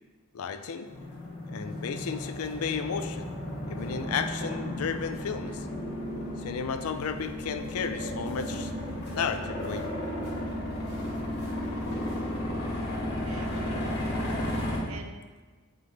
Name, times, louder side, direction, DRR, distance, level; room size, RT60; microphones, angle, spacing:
voice 1, 0.3-0.9 1.5-3.4 3.7-5.7 6.4-8.7 9.1-9.9, left 6 dB, 85° left, 10 dB, 0.4 m, -33 dB
sound 1, 0.9-14.8, left 1 dB, 50° left, 1.8 m, -34 dB
voice 2, 12.6-14.3 14.6-15.2, right 3 dB, 70° right, 5 dB, 0.7 m, -47 dB
5.8 x 5.1 x 3.3 m, 1.3 s
head